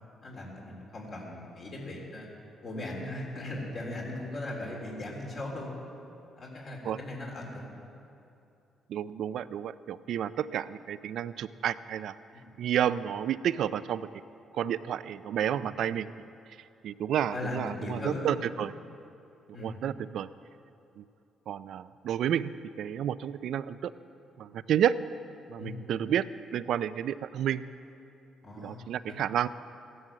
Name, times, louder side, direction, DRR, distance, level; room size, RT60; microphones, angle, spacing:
voice 1, 0.2-2.3 2.6-5.7 6.4-7.8 12.3-12.5 15.5-15.7 17.3-18.4 19.5-19.8 25.6-25.8 28.4-29.2, left 1 dB, 50° left, -2 dB, 3.7 m, -38 dB
voice 2, 8.9-12.1 12.6-14.1 14.5-16.1 16.8-18.7 19.6-20.3 21.0-21.1 21.5-23.9 24.4-25.0 25.5-26.3 26.5-27.6 28.6-29.5, right 10 dB, 75° right, 15 dB, 0.5 m, -30 dB
15.5 x 11.0 x 7.4 m, 2.7 s
cardioid pair, 90°, 0 cm